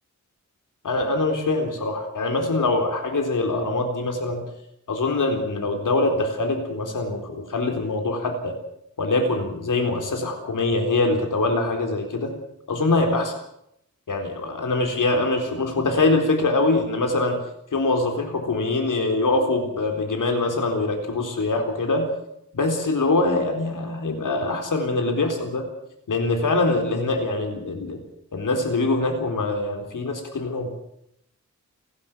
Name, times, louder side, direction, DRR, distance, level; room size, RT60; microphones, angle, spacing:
voice 1, 0.8-4.4 4.9-8.6 9.0-12.3 12.7-13.3 14.1-17.4 17.7-22.1 22.5-25.7 26.1-28.0 28.3-30.7, left 2 dB, 80° left, 4 dB, 4.1 m, -23 dB
29.5 x 12.0 x 7.5 m, 0.77 s
wide cardioid pair, 130°, 31 cm